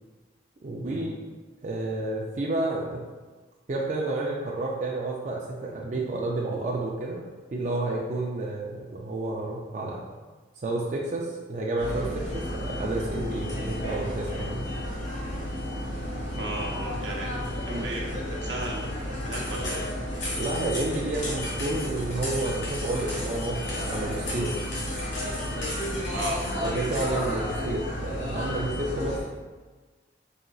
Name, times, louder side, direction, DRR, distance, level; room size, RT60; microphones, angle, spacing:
voice 1, 0.6-1.2 1.6-3.0 3.7-7.2 7.5-10.0 10.6-14.6 20.4-24.5 26.6-29.2, right 2 dB, 40° right, -3 dB, 0.4 m, -30 dB
sound 1, 11.8-29.2, left 1 dB, 80° left, 1.3 m, -32 dB
voice 2, 16.3-18.1 18.4-18.9 19.1-19.8 26.1-26.4, right 2 dB, 80° right, -2 dB, 0.8 m, -35 dB
4.1 x 3.8 x 2.3 m, 1.3 s
head